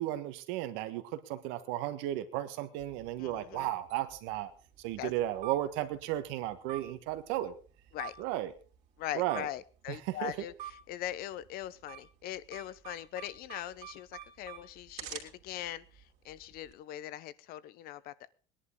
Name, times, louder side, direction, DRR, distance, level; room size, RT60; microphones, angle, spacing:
voice 1, 0.0-4.5 4.8-7.5 8.2-8.5 9.1-9.5 10.1-10.3, right 14 dB, 65° right, 11 dB, 1.6 m, -34 dB
sound 1, 2.8-16.7, right 10 dB, 35° right, 3.0 m, -50 dB
voice 2, 3.2-3.7 5.0-5.1 7.9-8.1 9.0-18.3, left 12 dB, 45° left, 18 dB, 0.8 m, -41 dB
20.0 x 11.0 x 3.8 m, 0.37 s
cardioid pair, 175°, 21 cm